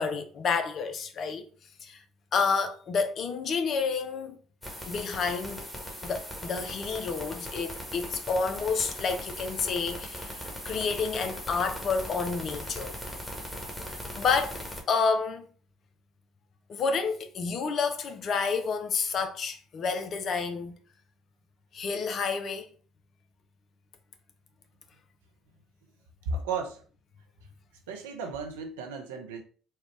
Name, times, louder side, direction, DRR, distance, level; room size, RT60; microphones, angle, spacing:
voice 1, 0.0-1.4 1.8-2.0 2.3-4.4 4.9-5.7 6.0-12.9 14.1-15.5 16.7-20.8 21.7-22.7, left 5 dB, 50° left, 0.6 m, -29 dB
sound 1, 4.6-14.8, equal, 10° left, 1.4 m, -39 dB
voice 2, 26.3-26.8 27.9-29.4, right 4 dB, 75° right, 0.7 m, -34 dB
4.3 x 2.3 x 3.2 m
hypercardioid pair, 55°, 0 cm